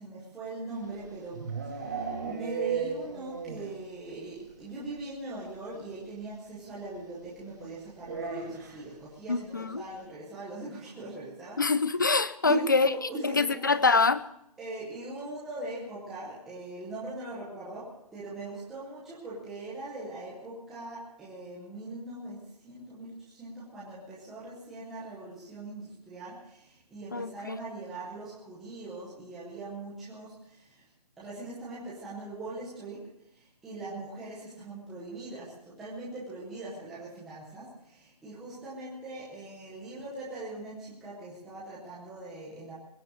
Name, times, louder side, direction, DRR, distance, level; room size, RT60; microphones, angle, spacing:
voice 1, 0.0-11.6 12.4-13.8 14.6-30.8 31.2-42.7, right 2 dB, ahead, 0.8 m, -41 dB
sound 1, 0.8-3.8 4.1-4.2 4.5-4.6 4.8-5.0 6.2-6.3 8.0-8.9, right 6 dB, 30° right, 2.2 m, -35 dB
voice 2, 9.3-9.8 11.6-12.9 13.2-14.2 27.1-27.6, left 4 dB, 30° left, 0.6 m, -25 dB
21.5 x 7.4 x 8.2 m
hypercardioid pair, 180°, 20 cm